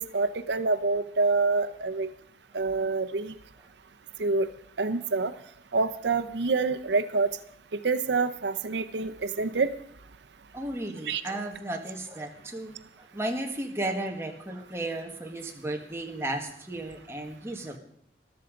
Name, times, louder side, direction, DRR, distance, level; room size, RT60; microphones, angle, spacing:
voice 1, 0.0-2.1 2.5-3.3 4.2-4.5 4.8-5.3 5.7-7.3 7.8-9.7 11.1-11.2, right 3 dB, 85° right, 10 dB, 0.7 m, -26 dB
voice 2, 10.5-17.8, right 1 dB, 15° right, 2 dB, 1.7 m, -34 dB
14.0 x 12.5 x 5.1 m, 0.67 s
head